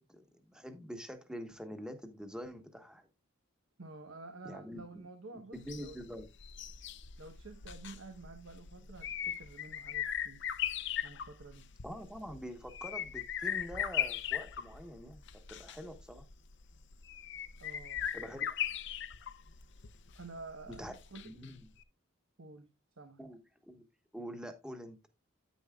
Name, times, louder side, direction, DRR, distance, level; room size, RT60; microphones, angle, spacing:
voice 1, 0.0-3.1 4.4-5.1 5.5-6.3 11.8-15.2 15.5-16.3 18.1-18.6 20.7-20.9 21.2-21.6 23.2-23.8 24.1-25.0, equal, 5° right, 1.1 m, -45 dB
voice 2, 3.8-6.0 7.2-10.4 11.0-11.7 17.6-18.0 20.1-21.3 22.4-23.2, right 3 dB, 75° right, 1.1 m, -50 dB
sound 1, 5.6-21.5 21.8-21.9, left 9 dB, 55° left, 0.6 m, -39 dB
9.5 x 9.4 x 2.3 m
head